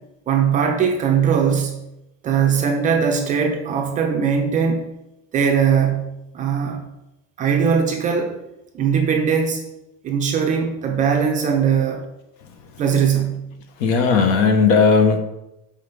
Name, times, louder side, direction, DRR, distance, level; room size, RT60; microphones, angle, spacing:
voice 1, 0.3-1.7 2.2-4.9 5.3-6.0 6.3-6.8 7.4-8.4 8.7-9.6 10.0-12.0 12.8-13.4, right 7 dB, 20° right, 2 dB, 0.7 m, -20 dB
voice 2, 13.8-15.2, left 5 dB, 45° left, 7 dB, 0.9 m, -16 dB
5.5 x 5.1 x 6.6 m, 0.90 s
supercardioid pair, 170°, 36 cm